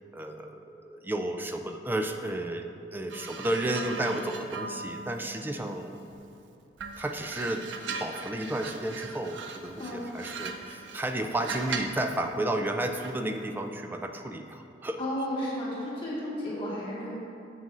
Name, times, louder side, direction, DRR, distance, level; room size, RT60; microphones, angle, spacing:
voice 1, 0.1-2.7 2.9-5.9 7.0-7.6 8.0-15.0, right 1 dB, 10° right, 5 dB, 0.3 m, -32 dB
sound 1, 3.1-6.3 6.8-12.1 13.0-13.3, right 4 dB, 90° right, 0.5 m, -39 dB
voice 2, 15.0-17.1, left 1 dB, 30° left, -8 dB, 1.6 m, -33 dB
9.3 x 7.5 x 2.5 m, 2.7 s
head